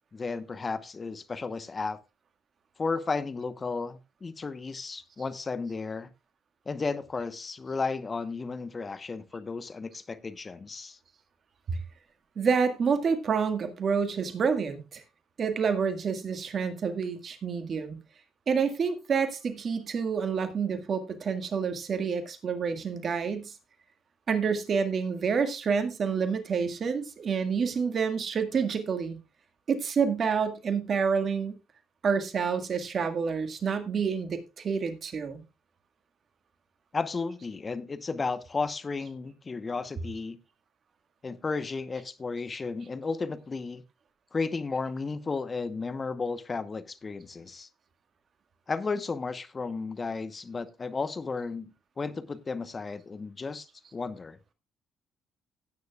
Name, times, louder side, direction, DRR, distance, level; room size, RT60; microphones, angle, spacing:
voice 1, 0.1-2.0 2.8-6.1 6.7-11.0 36.9-40.4 41.2-43.8 44.3-47.7 48.7-54.4, left 4 dB, 35° left, 1.0 m, -33 dB
voice 2, 12.4-15.0 15.4-18.0 18.5-23.5 24.3-29.2 29.7-31.5 32.0-35.4, right 6 dB, 50° right, 1.8 m, -28 dB
16.5 x 9.4 x 2.4 m
hypercardioid pair, 60°, 0 cm